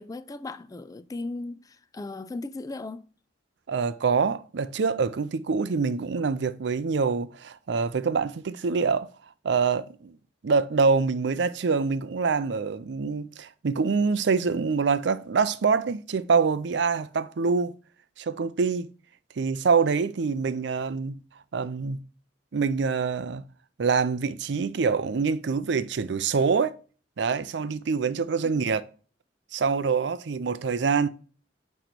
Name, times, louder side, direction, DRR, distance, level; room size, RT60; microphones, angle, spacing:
voice 1, 0.0-3.1 28.5-28.7, left 2 dB, 20° left, 0.3 m, -37 dB
voice 2, 3.7-9.1 9.4-10.2 10.4-17.7 18.2-18.9 19.4-21.2 21.5-22.0 22.5-23.4 23.8-26.8 27.2-28.8 29.5-31.1, right 5 dB, 70° right, 0.5 m, -25 dB
9.0 x 3.1 x 4.5 m
head